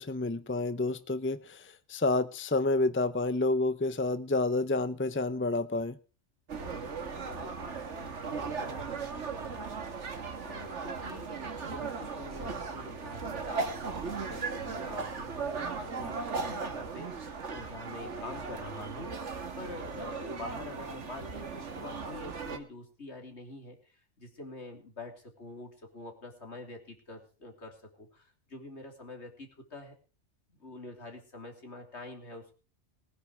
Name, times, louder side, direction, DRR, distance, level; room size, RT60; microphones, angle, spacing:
voice 1, 0.0-6.0, left 2 dB, 15° left, 13 dB, 0.6 m, -29 dB
sound 1, 6.5-22.6, right 4 dB, 80° right, 1.9 m, -37 dB
voice 2, 6.6-30.0 30.6-32.6, left 2 dB, 70° left, 4 dB, 3.5 m, -46 dB
20.0 x 10.0 x 4.9 m, 0.37 s
omnidirectional pair, 1.2 m